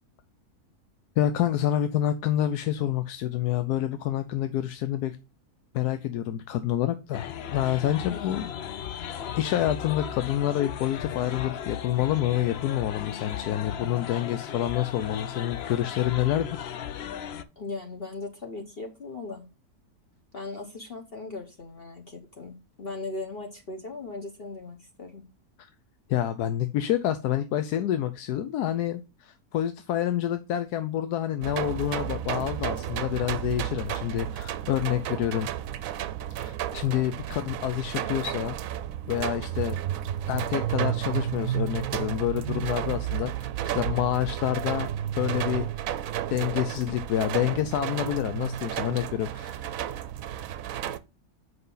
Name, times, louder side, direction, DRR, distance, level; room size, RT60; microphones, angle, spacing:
voice 1, 1.2-5.2 5.7-8.5 9.4-16.5 25.6-25.7 26.1-35.5 36.4-38.6 39.1-39.8 40.3-44.9 45.2-45.7 46.3-49.6, left 12 dB, 80° left, 10 dB, 1.2 m, -28 dB
sound 1, 7.1-17.4, left 9 dB, 60° left, 0.6 m, -36 dB
voice 2, 8.1-8.5 17.6-19.5 20.3-25.2, left 3 dB, 40° left, 2 dB, 1.3 m, -38 dB
sound 2, 31.4-51.0, right 11 dB, 70° right, 1.0 m, -32 dB
7.8 x 5.5 x 3.9 m, 0.28 s
omnidirectional pair, 1.7 m